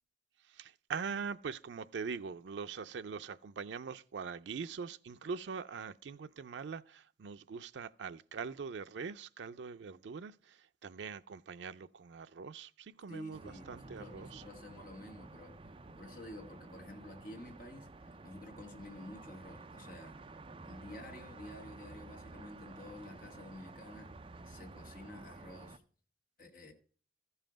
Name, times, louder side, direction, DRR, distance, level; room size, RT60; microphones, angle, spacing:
voice 1, 0.5-14.4, right 5 dB, 85° right, 0.4 m, -43 dB
voice 2, 13.1-20.2 20.6-24.1 24.4-25.8 26.4-26.7, left 1 dB, 50° left, 2.0 m, -50 dB
sound 1, 13.3-25.8, right 3 dB, 30° right, 0.5 m, -52 dB
14.5 x 5.6 x 5.0 m
head